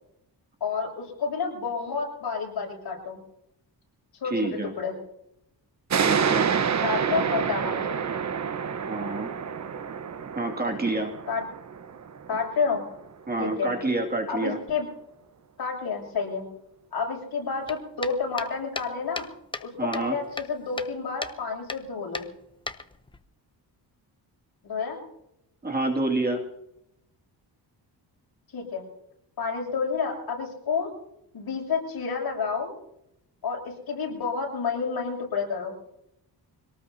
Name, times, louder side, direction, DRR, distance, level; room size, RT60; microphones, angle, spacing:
voice 1, 0.6-3.2 4.2-5.0 6.8-8.0 11.3-11.4 12.3-12.8 13.4-13.7 14.3-14.9 15.6-16.5 16.9-19.3 19.6-22.3 24.6-25.0 28.5-28.8 29.4-30.9 31.3-32.8 33.4-35.7, left 5 dB, 65° left, 0 dB, 7.3 m, -30 dB
voice 2, 4.2-4.7 6.0-6.5 8.9-9.3 10.4-11.1 13.3-14.6 19.8-20.2 25.6-26.4, right 2 dB, 25° right, 1 dB, 2.4 m, -27 dB
sound 1, 5.9-13.1, right 7 dB, 45° right, 1.0 m, -28 dB
sound 2, 17.7-19.7 19.9-20.9 21.2-21.4 21.7-21.8 22.1-23.2, left 3 dB, 10° left, 0.7 m, -36 dB
25.0 x 18.5 x 2.8 m, 0.80 s
cardioid pair, 120°, 40 cm